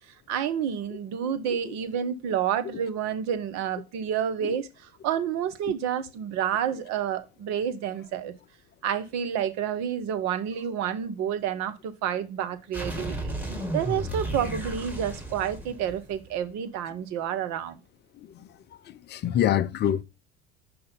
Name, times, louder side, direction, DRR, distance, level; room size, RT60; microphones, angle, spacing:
voice 1, 0.3-4.7 5.0-8.3 8.8-13.3 13.7-17.8, right 9 dB, 50° right, 0.9 m, -29 dB
sound 1, 12.7-16.4, right 2 dB, 5° right, 1.7 m, -34 dB
voice 2, 18.9-20.0, left 10 dB, 30° left, 0.5 m, -25 dB
5.5 x 4.3 x 5.2 m
hypercardioid pair, 70°, 34 cm